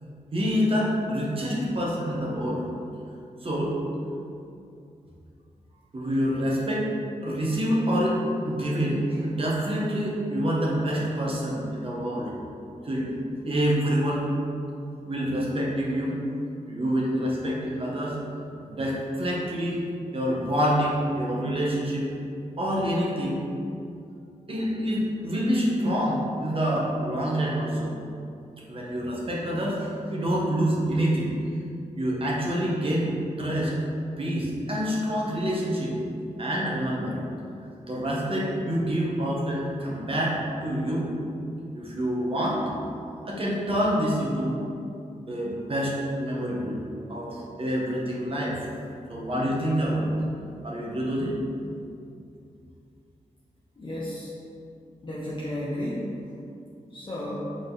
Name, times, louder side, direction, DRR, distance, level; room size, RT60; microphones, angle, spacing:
voice 1, 0.3-2.6 3.4-3.8 5.9-6.9 7.2-12.3 12.8-13.1 13.4-14.3 15.1-16.2 16.7-18.2 18.6-19.8 20.1-22.0 22.6-23.4 24.5-27.9 28.7-31.3 32.0-33.1 33.4-33.7 34.2-35.9 36.4-37.2 37.9-41.1 41.7-42.6 43.2-44.6 45.3-46.8 47.1-48.7 49.1-50.2 50.6-51.3, equal, 40° right, -4 dB, 1.4 m, -27 dB
voice 2, 53.8-54.3 55.0-56.3 56.9-57.6, left 1 dB, 35° left, -7 dB, 0.9 m, -33 dB
5.7 x 4.0 x 4.0 m, 2.5 s
cardioid pair, 85°, 14 cm